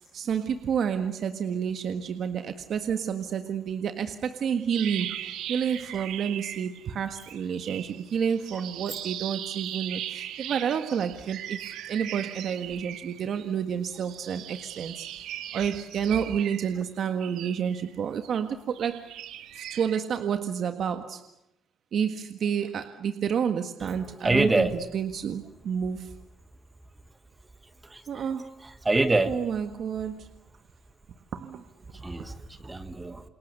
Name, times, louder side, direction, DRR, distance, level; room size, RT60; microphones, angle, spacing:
voice 1, 0.1-15.1 15.5-19.1 19.5-21.3 21.9-26.1 28.1-28.5 29.3-30.3 31.3-31.6 31.9-32.3, right 7 dB, 45° right, 8 dB, 1.7 m, -30 dB
sound 1, 4.7-6.9 7.2-13.4 13.9-18.3 18.7-20.0, right 11 dB, 75° right, 2.1 m, -39 dB
voice 2, 24.2-24.7 27.9-28.2 28.8-29.3 32.0-32.3 32.6-33.2, right 2 dB, 10° right, 10 dB, 1.5 m, -24 dB
28.5 x 28.0 x 6.8 m, 0.82 s
cardioid pair, 165°, 0 cm